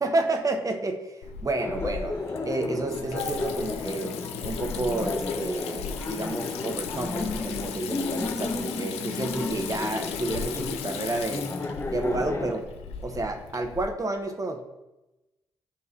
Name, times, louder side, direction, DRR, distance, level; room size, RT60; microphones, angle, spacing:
voice 1, 0.0-2.2 2.4-11.5 11.9-12.7 13.0-14.6, right 2 dB, 30° right, 5 dB, 0.8 m, -30 dB
Water tap faucet / Sink (filling or washing), 1.2-13.9, left 7 dB, 80° left, 0.4 m, -36 dB
Laughter, 1.6-12.5, left 3 dB, 25° left, 0.7 m, -33 dB
sound 1, 1.7-6.8, left 2 dB, 75° right, 1.6 m, -45 dB
8.5 x 3.1 x 3.6 m, 1.0 s
hypercardioid pair, 40°, 11 cm